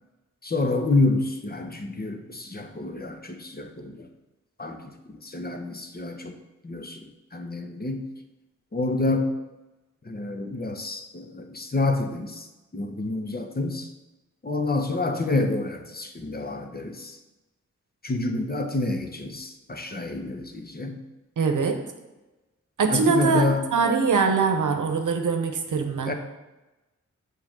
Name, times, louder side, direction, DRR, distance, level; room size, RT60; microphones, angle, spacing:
voice 1, 0.4-4.1 4.6-6.4 6.6-8.1 8.7-9.3 10.0-13.9 14.4-17.2 18.0-21.0 22.9-23.6 26.0-26.1, left 2 dB, 30° left, 5 dB, 0.8 m, -28 dB
voice 2, 21.4-21.8 22.8-23.4 23.7-26.1, right 5 dB, 85° right, 5 dB, 0.8 m, -22 dB
6.8 x 3.3 x 6.1 m, 1.1 s
cardioid pair, 50°, 30 cm